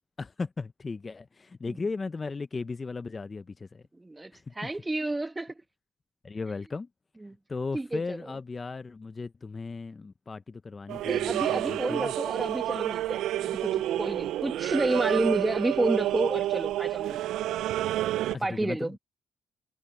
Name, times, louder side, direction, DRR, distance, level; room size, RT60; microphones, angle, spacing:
voice 1, 0.2-3.8 4.3-4.7 6.2-6.9 7.5-12.1 18.3-19.0, left 4 dB, 30° left, 0.6 m, -36 dB
voice 2, 3.9-5.5 7.2-7.4 7.7-8.2 11.1-17.2 18.4-19.0, right 2 dB, 15° right, 1.5 m, -30 dB
sound 1, 10.9-18.3, right 14 dB, 85° right, 0.3 m, -29 dB
cardioid pair, 90°, 0 cm